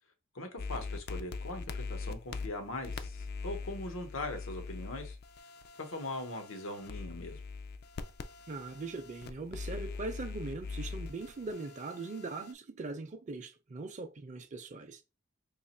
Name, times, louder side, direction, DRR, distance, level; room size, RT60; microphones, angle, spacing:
voice 1, 0.3-5.2 5.8-7.4, left 2 dB, 85° left, 0.9 m, -40 dB
sound 1, 0.6-12.5, left 4 dB, 55° left, 0.4 m, -42 dB
voice 2, 8.5-15.0, right 3 dB, 40° right, 0.4 m, -41 dB
2.9 x 2.4 x 4.2 m
head